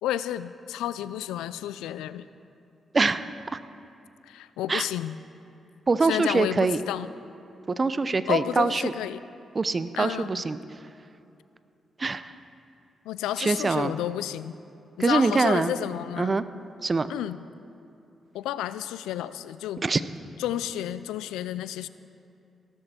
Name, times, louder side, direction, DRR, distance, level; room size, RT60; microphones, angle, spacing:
voice 1, 0.0-2.3 4.3-5.2 6.0-7.1 8.3-9.2 10.0-10.4 13.1-14.5 15.0-16.4 17.1-17.4 18.3-19.8 20.4-21.9, left 12 dB, 85° left, 15 dB, 0.4 m, -31 dB
voice 2, 2.9-3.3 4.7-4.9 5.9-6.8 7.8-8.9 9.5-10.6 12.0-12.3 13.4-13.9 15.0-15.7 16.2-16.4 16.8-17.1 19.8-20.0, right 3 dB, 40° right, 13 dB, 0.7 m, -24 dB
17.5 x 12.5 x 4.4 m, 2.7 s
hypercardioid pair, 45°, 0 cm